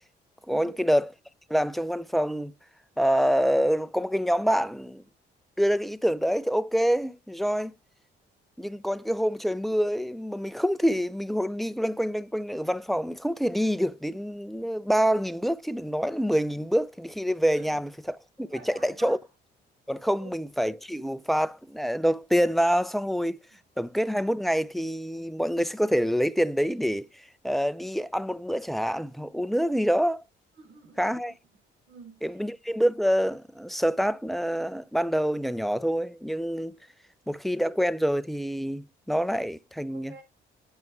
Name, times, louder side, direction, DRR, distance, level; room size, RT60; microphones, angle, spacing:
voice 1, 0.5-1.1 1.5-2.5 3.0-5.0 5.6-7.7 8.6-19.2 19.9-23.4 23.8-30.2 31.0-31.3 32.2-36.7 37.3-40.1, equal, ahead, 0.4 m, -26 dB
voice 2, 18.4-19.2 20.2-20.3 30.5-31.3 31.9-32.2 39.9-40.2, right 5 dB, 70° right, 6.1 m, -49 dB
9.3 x 5.5 x 4.5 m
cardioid pair, 90°, 20 cm